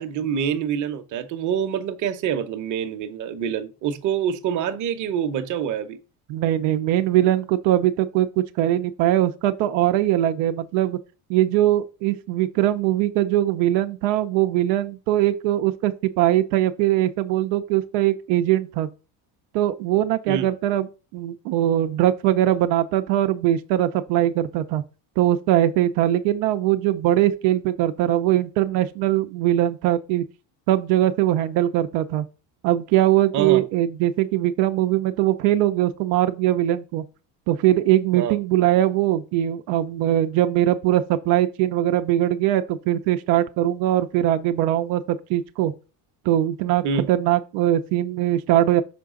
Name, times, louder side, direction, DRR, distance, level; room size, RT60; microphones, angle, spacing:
voice 1, 0.0-6.0 20.3-20.5 33.3-33.6 38.1-38.4 46.8-47.1, right 8 dB, 40° right, 0.8 m, -26 dB
voice 2, 6.3-11.0 11.3-18.9 19.5-20.9 21.1-24.8 25.2-30.2 30.7-32.2 32.6-37.0 37.5-45.7 46.2-48.8, right 13 dB, 90° right, 0.7 m, -21 dB
6.1 x 4.7 x 3.7 m
cardioid pair, 145°, 44 cm